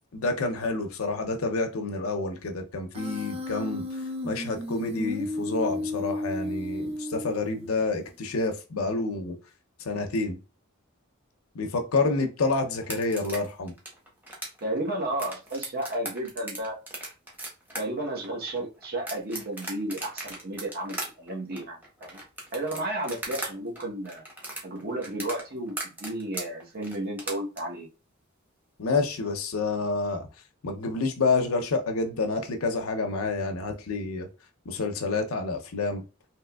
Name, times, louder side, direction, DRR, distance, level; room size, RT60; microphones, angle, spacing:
voice 1, 0.1-3.8 4.2-9.3 9.8-10.4 11.5-13.7 28.8-30.3 30.6-34.3 34.7-36.0, left 3 dB, 90° left, 0.6 m, -28 dB
Human voice, 2.9-7.9, left 1 dB, 30° right, 0.5 m, -33 dB
sound 1, 12.8-23.5 23.8-27.6, right 1 dB, 10° right, 1.0 m, -37 dB
voice 2, 14.6-16.8 17.7-22.2 22.5-24.2 24.6-27.9, right 1 dB, 50° right, 0.9 m, -33 dB
3.4 x 2.8 x 2.2 m
head